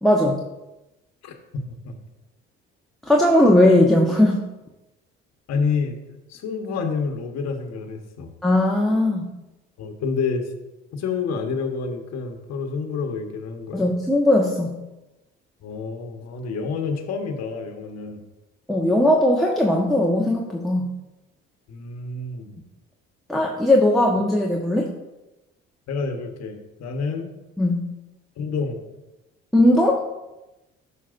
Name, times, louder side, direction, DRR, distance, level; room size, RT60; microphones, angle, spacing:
voice 1, 0.0-0.4 3.1-4.4 8.4-9.3 13.7-14.8 18.7-20.9 23.3-24.9 27.6-27.9 29.5-30.0, left 1 dB, ahead, -1 dB, 1.2 m, -18 dB
voice 2, 1.2-1.9 5.5-6.0 6.3-8.3 9.8-10.5 10.9-13.9 15.6-18.2 21.7-22.5 25.9-27.3 28.4-28.8, left 5 dB, 60° left, 4 dB, 1.3 m, -28 dB
13.0 x 5.2 x 2.6 m, 1.0 s
hypercardioid pair, 55°, 30 cm